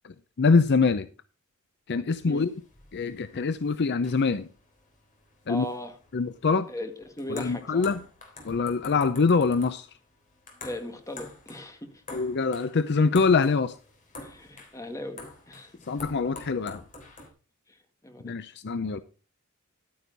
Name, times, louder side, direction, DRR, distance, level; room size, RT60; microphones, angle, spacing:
voice 1, 0.4-1.1 1.9-2.5 2.9-4.5 5.5-5.6 6.1-6.7 7.4-8.0 8.5-9.9 12.1-13.7 15.9-16.8 18.2-19.0, left 4 dB, 55° left, 0.6 m, -24 dB
sound 1, 2.1-17.3, left 2 dB, 35° left, 3.5 m, -47 dB
voice 2, 5.5-6.0 6.7-7.9 10.6-12.0 14.2-15.7 17.7-18.3, left 1 dB, 15° left, 1.7 m, -38 dB
11.5 x 9.4 x 3.9 m
head